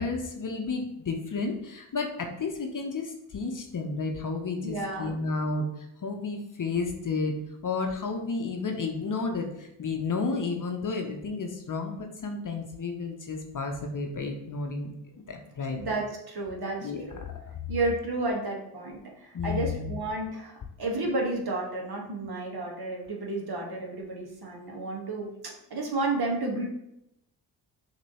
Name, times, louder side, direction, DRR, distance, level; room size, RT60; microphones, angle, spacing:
voice 1, 0.0-7.3 7.6-15.8 16.8-17.0 17.4-17.7 19.3-19.9, left 4 dB, 40° left, 3 dB, 0.8 m, -32 dB
voice 2, 4.6-5.1 15.8-17.2 17.7-26.6, right 2 dB, 50° right, -1 dB, 1.6 m, -32 dB
5.9 x 3.0 x 3.0 m, 0.82 s
hypercardioid pair, 40°, 50 cm